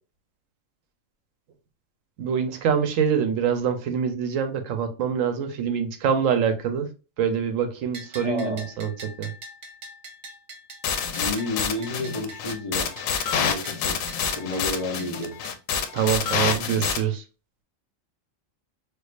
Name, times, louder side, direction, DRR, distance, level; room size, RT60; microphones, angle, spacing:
voice 1, 2.2-6.9 7.2-8.9 9.2-9.3 15.9-17.2, right 7 dB, 85° right, 1.0 m, -25 dB
Bell, 7.9-15.6, right 1 dB, 55° right, 0.4 m, -43 dB
voice 2, 8.2-8.7 11.2-12.9 13.3-14.0 14.4-15.3, left 2 dB, 35° left, 0.7 m, -30 dB
sound 1, 10.8-17.0, left 7 dB, 90° left, 1.0 m, -27 dB
4.5 x 2.3 x 2.4 m
omnidirectional pair, 1.3 m